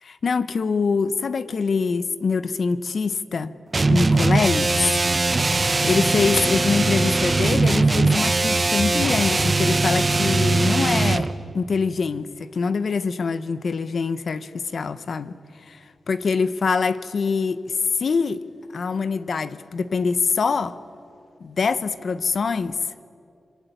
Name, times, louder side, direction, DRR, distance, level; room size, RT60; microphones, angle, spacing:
voice 1, 0.2-3.5 3.9-4.7 5.8-11.3 11.5-18.4 18.7-20.8 21.4-22.8, left 5 dB, 60° left, 1.1 m, -24 dB
sound 1, 3.7-11.3, right 3 dB, 30° right, 1.1 m, -20 dB
26.0 x 23.5 x 9.3 m
wide cardioid pair, 95°, 0 cm